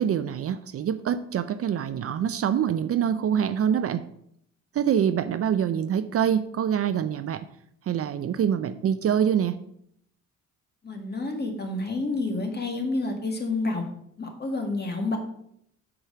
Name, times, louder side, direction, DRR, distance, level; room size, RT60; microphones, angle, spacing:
voice 1, 0.0-4.1 4.7-7.5 7.9-9.6, right 8 dB, 50° right, 13 dB, 0.5 m, -25 dB
voice 2, 10.8-13.8 14.2-15.2, left 2 dB, 35° left, 4 dB, 1.9 m, -29 dB
6.0 x 4.8 x 6.5 m, 0.71 s
cardioid pair, 90°, 30 cm